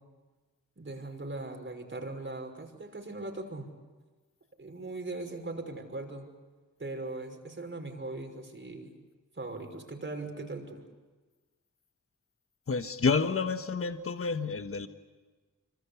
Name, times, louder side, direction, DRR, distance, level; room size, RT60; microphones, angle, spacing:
voice 1, 0.8-3.7 4.6-6.3 6.8-8.9 9.3-10.8, right 2 dB, 35° right, 4 dB, 5.9 m, -39 dB
voice 2, 12.7-14.9, left 4 dB, 45° left, 8 dB, 1.4 m, -29 dB
26.0 x 25.0 x 8.4 m, 1.3 s
cardioid pair, 60°, 32 cm